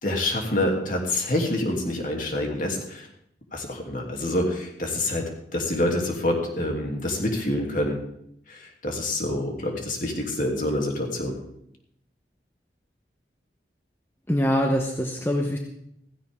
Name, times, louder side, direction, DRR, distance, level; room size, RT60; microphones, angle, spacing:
voice 1, 0.0-3.1 3.5-5.2 5.5-8.0 8.5-11.4, left 1 dB, 50° left, 1 dB, 2.9 m, -27 dB
voice 2, 14.3-15.6, equal, 15° left, 2 dB, 1.0 m, -24 dB
16.0 x 16.0 x 3.7 m, 0.74 s
head